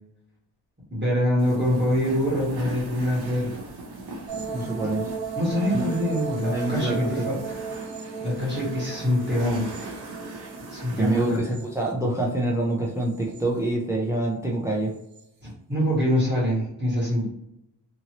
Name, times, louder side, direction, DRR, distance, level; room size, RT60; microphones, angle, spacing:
voice 1, 0.9-3.5 4.8-4.9 5.4-7.6 8.2-9.7 10.7-11.6 15.4-17.3, equal, 25° right, -7 dB, 1.2 m, -25 dB
sound 1, 1.4-11.4, right 2 dB, 60° right, 0.8 m, -39 dB
sound 2, 4.3-12.4 12.9-13.7 14.9-15.2, right 5 dB, 85° right, 1.0 m, -36 dB
voice 2, 4.5-5.1 5.7-5.9 6.5-7.3 11.0-14.9, right 1 dB, 5° right, 0 dB, 0.4 m, -26 dB
2.9 x 2.7 x 2.8 m, 0.82 s
wide cardioid pair, 160°, 43 cm